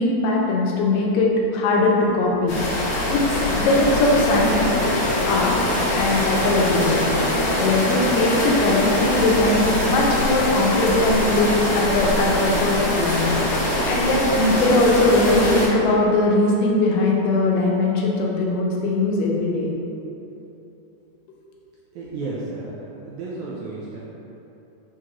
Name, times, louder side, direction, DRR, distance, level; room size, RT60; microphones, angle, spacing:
voice 1, 0.0-2.6 3.1-4.8 5.2-5.6 5.9-7.0 7.6-13.3 13.9-19.7, left 2 dB, 90° left, -2 dB, 2.3 m, -20 dB
sound 1, 2.5-15.7, left 1 dB, 70° left, 1.4 m, -23 dB
voice 2, 21.9-24.0, right 3 dB, 80° right, -6 dB, 1.7 m, -33 dB
6.3 x 2.4 x 2.9 m, 3.0 s
omnidirectional pair, 3.8 m